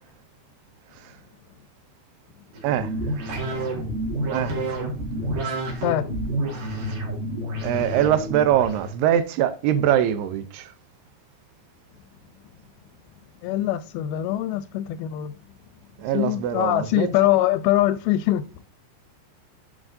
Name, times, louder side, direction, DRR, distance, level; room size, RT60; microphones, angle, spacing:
sound 1, 2.5-8.9, right 1 dB, 60° right, 3.3 m, -29 dB
voice 1, 7.6-10.7 16.0-17.1, right 11 dB, 80° right, 2.7 m, -23 dB
voice 2, 13.4-15.3 16.1-18.5, left 13 dB, 85° left, 2.3 m, -23 dB
9.6 x 6.0 x 2.6 m
omnidirectional pair, 4.7 m